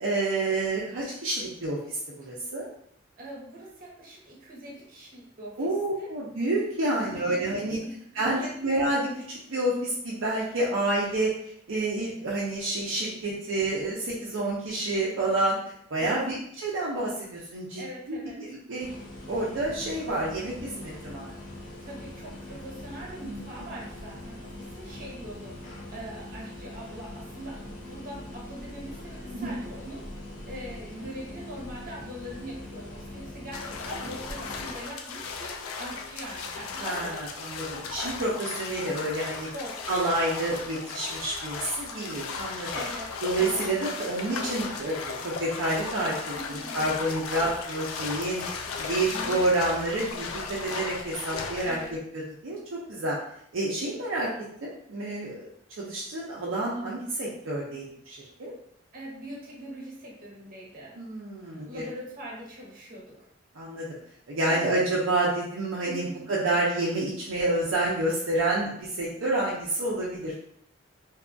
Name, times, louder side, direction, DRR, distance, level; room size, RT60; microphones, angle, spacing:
voice 1, 0.0-2.7 5.6-7.8 8.1-11.3 11.7-15.6 15.9-16.4 16.6-17.8 18.1-18.9 19.3-21.3 23.2-23.4 29.3-29.5 36.8-39.5 39.9-42.7 43.2-46.2 46.5-51.8 52.4-53.2 53.5-54.3 54.6-55.5 55.8-58.5 61.0-61.8 63.5-63.9 64.3-70.4, right 2 dB, 65° right, -5 dB, 0.5 m, -29 dB
voice 2, 3.2-5.6 6.0-6.1 6.9-8.5 16.0-16.4 17.8-18.4 21.8-37.1 39.5-39.9 42.7-43.6 46.3-46.7 49.1-49.4 51.6-51.9 58.9-60.9 61.4-63.3 64.4-64.7 65.9-66.3, right 1 dB, 45° right, -4 dB, 0.9 m, -42 dB
sound 1, 18.8-34.7, left 1 dB, 40° left, 0.7 m, -42 dB
sound 2, 33.5-52.0, left 4 dB, 90° left, 0.3 m, -36 dB
2.6 x 2.3 x 2.5 m, 0.70 s
head